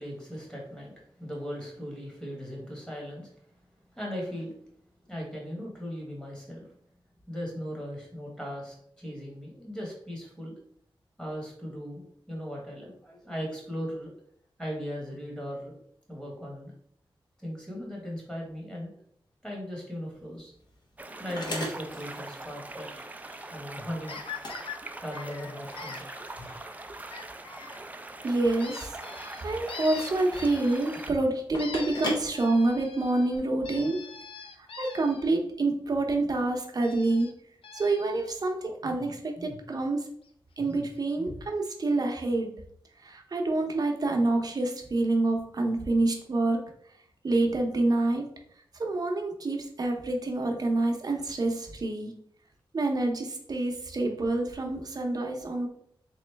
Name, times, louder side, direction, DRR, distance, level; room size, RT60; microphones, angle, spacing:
voice 1, 0.0-3.3 3.9-4.5 5.0-6.7 7.3-10.6 11.2-14.1 14.6-15.8 16.1-16.7 17.4-18.9 19.4-20.5 21.2-24.2 25.0-26.0 26.4-26.5 29.3-29.4 38.8-39.0 39.4-39.6 40.6-40.8 41.2-41.3, equal, 10° left, -2 dB, 1.3 m, -38 dB
sound 1, 20.1-33.4, left 1 dB, 50° left, 0.9 m, -41 dB
sound 2, 21.0-31.1, right 2 dB, 15° right, 0.3 m, -42 dB
sound 3, 24.1-24.8 25.1-26.0 27.1-27.8 28.6-31.2 31.6-35.4 36.8-37.3 37.6-38.3 40.3-40.4 40.7-40.8 41.1-41.2, left 6 dB, 90° left, 0.4 m, -43 dB
voice 2, 28.2-34.0 34.8-37.3 37.7-40.1 40.6-42.5 43.0-46.6 47.2-48.2 48.8-52.1 52.7-55.7, right 2 dB, 45° right, 2 dB, 0.7 m, -27 dB
3.7 x 3.0 x 3.3 m, 0.66 s
wide cardioid pair, 125°, 9 cm